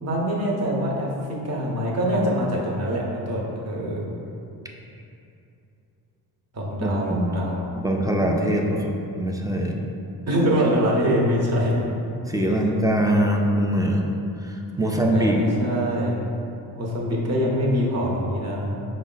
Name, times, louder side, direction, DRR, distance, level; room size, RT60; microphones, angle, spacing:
voice 1, 0.0-4.0 6.5-7.7 10.3-11.7 12.6-12.7 14.8-16.2 16.7-18.8, equal, 40° right, -3 dB, 0.9 m, -24 dB
voice 2, 6.8-7.3 7.8-9.8 12.3-14.1 14.4-15.4, right 1 dB, 10° right, 0 dB, 0.3 m, -23 dB
4.9 x 2.1 x 3.8 m, 2.7 s
cardioid pair, 80°, 40 cm